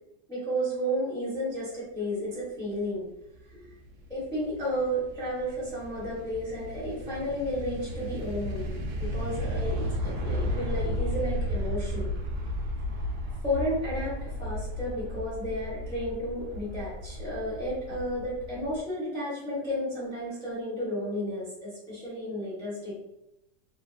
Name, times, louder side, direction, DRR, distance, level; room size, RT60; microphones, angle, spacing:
voice 1, 0.3-3.1 3.5-3.7 4.1-8.7 9.0-12.1 13.4-22.9, equal, 5° left, -7 dB, 0.7 m, -32 dB
sound 1, 3.3-18.8, equal, 75° right, 1.0 m, -34 dB
2.8 x 2.7 x 2.4 m, 0.84 s
omnidirectional pair, 1.9 m